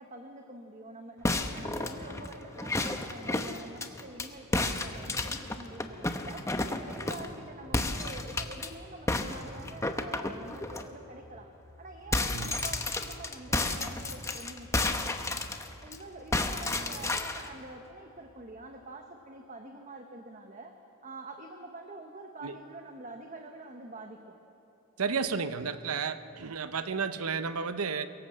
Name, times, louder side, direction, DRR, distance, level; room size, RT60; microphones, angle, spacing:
voice 1, 0.0-11.5 11.8-15.5 15.8-20.7 21.0-24.4, right 2 dB, 35° right, 4 dB, 1.1 m, -46 dB
sound 1, 1.2-4.3 4.5-7.3 7.7-8.7 9.1-10.8 11.2-11.4 11.7-16.0 16.3-17.5, left 2 dB, 15° left, 0.9 m, -32 dB
voice 2, 25.0-28.1, right 5 dB, 80° right, 11 dB, 0.8 m, -32 dB
23.0 x 17.5 x 7.5 m, 2.9 s
head